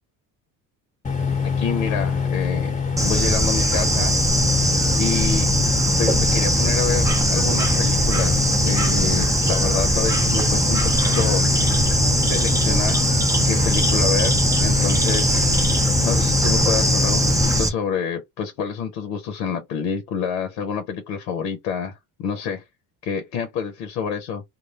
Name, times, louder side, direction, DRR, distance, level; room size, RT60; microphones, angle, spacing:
sound 1, 1.0-17.6, left 5 dB, 15° left, 0.8 m, -24 dB
voice 1, 1.4-2.7 3.0-4.2 5.0-5.5 6.0-11.5 12.3-13.0 13.4-15.4 15.8-22.6 23.0-24.4, left 7 dB, 85° left, 0.7 m, -28 dB
Bird / Insect, 3.0-17.7, right 2 dB, 5° right, 0.5 m, -21 dB
2.2 x 2.0 x 2.8 m
hypercardioid pair, 70°, 49 cm